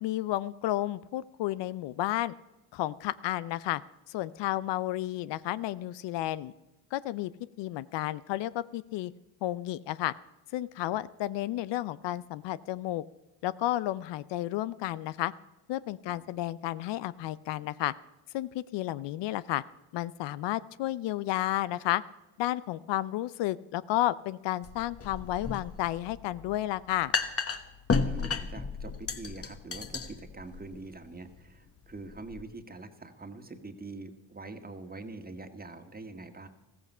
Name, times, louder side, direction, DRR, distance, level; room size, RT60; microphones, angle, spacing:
voice 1, 0.0-2.3 2.7-3.8 4.1-6.5 6.9-7.3 7.6-9.1 9.4-10.1 10.5-13.0 13.4-15.3 15.7-17.9 18.3-19.6 19.9-22.0 22.4-27.1, left 15 dB, 70° left, 17 dB, 0.6 m, -32 dB
sound 1, 24.6-32.4, left 4 dB, 30° left, 1.3 m, -34 dB
voice 2, 28.0-36.5, right 3 dB, 20° right, 7 dB, 1.7 m, -44 dB
14.5 x 14.5 x 5.5 m, 1.0 s
supercardioid pair, 75°, 45 cm